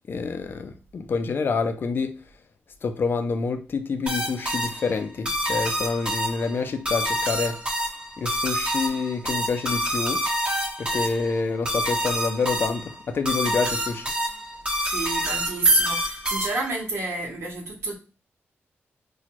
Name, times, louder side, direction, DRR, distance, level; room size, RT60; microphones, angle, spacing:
voice 1, 0.1-2.1 2.8-7.6 8.2-10.2 10.8-14.1, left 4 dB, 50° left, 0.5 m, -27 dB
sound 1, 4.1-16.8, equal, 25° right, 1.2 m, -28 dB
voice 2, 14.8-18.0, right 2 dB, 70° right, 1.2 m, -26 dB
4.2 x 2.3 x 2.9 m
wide cardioid pair, 105°, 5 cm